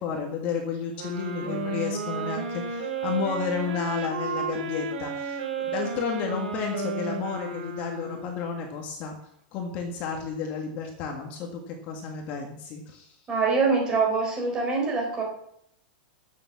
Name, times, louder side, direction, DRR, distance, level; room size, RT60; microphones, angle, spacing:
voice 1, 0.0-9.2 9.5-13.1, left 6 dB, 30° left, 2 dB, 1.7 m, -32 dB
sound 1, 0.9-8.6, right 3 dB, 80° right, 4.2 m, -32 dB
voice 2, 13.3-15.2, right 4 dB, 15° right, -1 dB, 3.9 m, -24 dB
15.5 x 7.1 x 7.2 m, 0.75 s
supercardioid pair, 175°, 5 cm